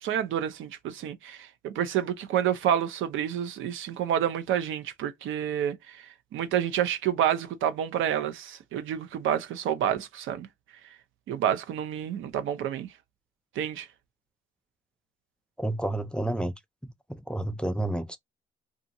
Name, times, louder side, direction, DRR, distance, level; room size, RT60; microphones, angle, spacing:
voice 1, 0.0-10.5 11.3-12.9 13.6-13.9, right 10 dB, 80° right, 0.5 m, -29 dB
voice 2, 15.6-16.5 16.8-18.2, right 1 dB, 5° left, 0.3 m, -30 dB
2.6 x 2.4 x 2.6 m
cardioid pair, 90°, 20 cm